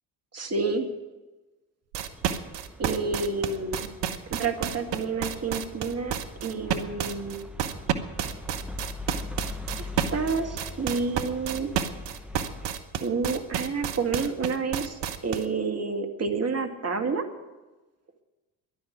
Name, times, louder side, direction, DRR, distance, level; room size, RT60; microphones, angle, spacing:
voice 1, 0.3-0.9 2.8-3.9 4.3-6.2 6.4-7.4 9.8-11.7 13.0-17.3, right 4 dB, 30° right, 5 dB, 2.1 m, -29 dB
sound 1, 1.9-15.5, right 9 dB, 60° right, 1.2 m, -30 dB
sound 2, 2.0-12.7, left 3 dB, ahead, 1.3 m, -42 dB
11.5 x 10.5 x 9.4 m, 1.2 s
hypercardioid pair, 55°, 48 cm